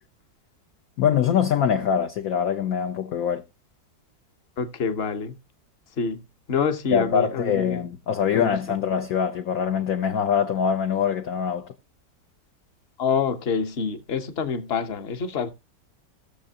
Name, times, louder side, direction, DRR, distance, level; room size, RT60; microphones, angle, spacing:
voice 1, 1.0-3.4 6.9-11.7, left 8 dB, 65° left, 1.0 m, -23 dB
voice 2, 4.6-5.4 6.0-6.2 6.5-7.8 8.3-8.5 13.0-15.5, left 5 dB, 40° left, 1.1 m, -26 dB
16.5 x 6.9 x 2.8 m
omnidirectional pair, 1.9 m